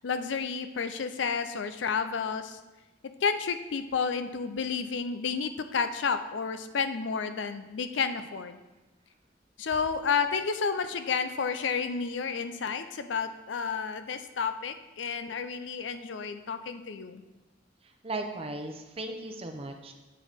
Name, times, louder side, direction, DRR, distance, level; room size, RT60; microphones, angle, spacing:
voice 1, 0.0-2.6 3.2-8.6 9.6-17.2, left 5 dB, 80° left, 10 dB, 0.5 m, -31 dB
voice 2, 18.0-19.9, right 2 dB, 30° right, 5 dB, 0.7 m, -36 dB
7.7 x 6.3 x 3.5 m, 1.1 s
head